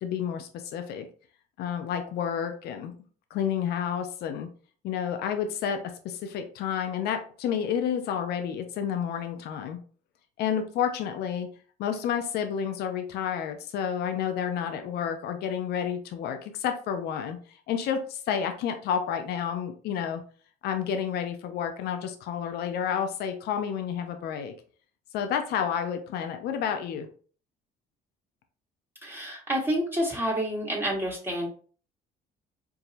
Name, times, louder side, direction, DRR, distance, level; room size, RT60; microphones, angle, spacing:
voice 1, 0.0-1.1 1.6-3.0 3.3-4.5 4.8-9.8 10.4-11.5 11.8-17.4 17.7-20.2 20.6-24.5 25.1-27.1, left 8 dB, 75° left, 7 dB, 0.5 m, -30 dB
voice 2, 29.0-31.5, equal, 15° right, -3 dB, 1.5 m, -28 dB
4.6 x 2.7 x 2.5 m, 0.41 s
cardioid pair, 110°, 17 cm